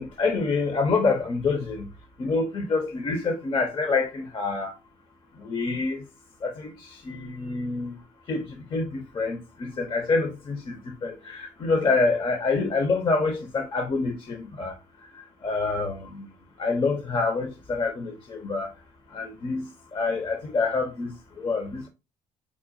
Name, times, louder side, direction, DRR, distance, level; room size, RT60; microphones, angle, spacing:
voice 1, 0.0-1.9 2.2-4.7 5.4-6.0 6.4-8.0 8.3-14.7 15.4-16.3 16.6-18.7 19.1-21.1 21.4-21.9, left 4 dB, 35° left, 0.6 m, -27 dB
4.8 x 2.1 x 2.6 m
supercardioid pair, 85°, 14 cm